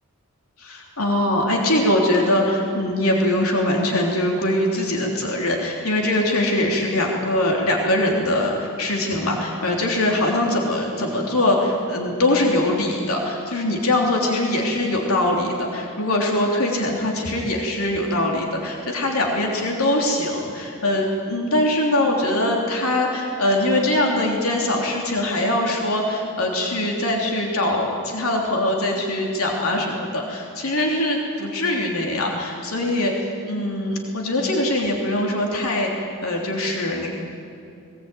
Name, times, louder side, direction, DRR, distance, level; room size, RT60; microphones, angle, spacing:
voice 1, 0.6-33.1 33.5-37.2, left 1 dB, 90° left, -1 dB, 3.3 m, -22 dB
21.0 x 20.0 x 9.2 m, 2.6 s
head